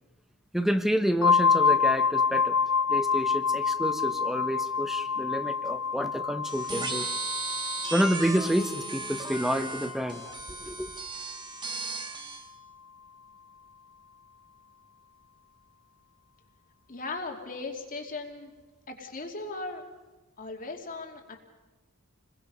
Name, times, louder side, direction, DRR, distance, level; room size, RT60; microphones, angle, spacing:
voice 1, 0.5-2.6 2.9-7.1 7.9-10.2 10.6-10.9, equal, ahead, 8 dB, 1.2 m, -29 dB
sound 1, 1.2-10.8, left 5 dB, 65° left, 0.7 m, -28 dB
sound 2, 6.4-12.5, right 4 dB, 20° right, 2.0 m, -36 dB
voice 2, 16.9-18.5 18.9-19.9 20.4-21.4, left 3 dB, 40° left, 2 dB, 2.7 m, -37 dB
29.5 x 21.5 x 5.5 m, 1.2 s
head